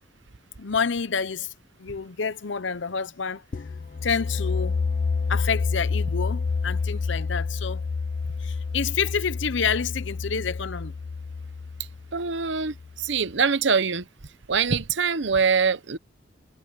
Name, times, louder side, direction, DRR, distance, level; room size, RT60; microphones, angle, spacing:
voice 1, 0.6-1.5 1.8-3.4 4.0-4.8 5.3-7.8 8.4-10.9, left 6 dB, 65° left, 0.8 m, -28 dB
sound 1, 3.5-13.1, left 4 dB, 40° left, 0.3 m, -29 dB
voice 2, 12.1-14.1 14.5-16.0, right 5 dB, 65° right, 0.9 m, -24 dB
head